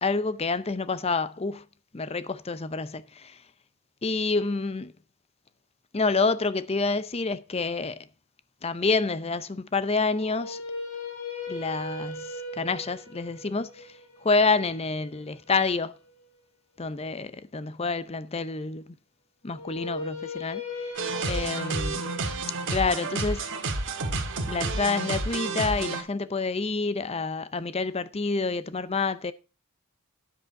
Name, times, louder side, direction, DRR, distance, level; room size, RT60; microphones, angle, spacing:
voice 1, 0.0-1.6 1.9-3.4 4.0-4.9 5.9-8.1 8.6-10.6 11.5-15.9 16.8-19.0 19.4-20.9 21.3-22.1 22.7-23.5 24.5-29.3, left 4 dB, 25° left, 0.6 m, -28 dB
sound 1, 10.1-16.2 19.5-25.6, left 2 dB, 80° left, 2.7 m, -39 dB
sound 2, 21.0-26.0, right 3 dB, 55° right, 1.8 m, -30 dB
9.9 x 7.9 x 4.6 m
head